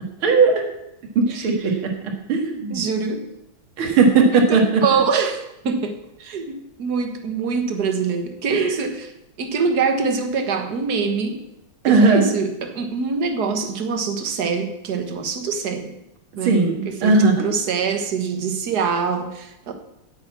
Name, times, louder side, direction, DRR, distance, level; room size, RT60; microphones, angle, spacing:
voice 1, 0.2-0.6 1.2-1.8 2.3-2.8 3.8-4.8 8.5-8.7 11.8-12.3 16.4-17.4, right 4 dB, 75° right, 3 dB, 2.5 m, -17 dB
voice 2, 2.7-3.3 4.3-9.1 9.4-11.4 11.8-15.9 16.4-19.7, right 5 dB, 55° right, 6 dB, 1.7 m, -24 dB
8.9 x 8.2 x 8.4 m, 0.85 s
omnidirectional pair, 2.3 m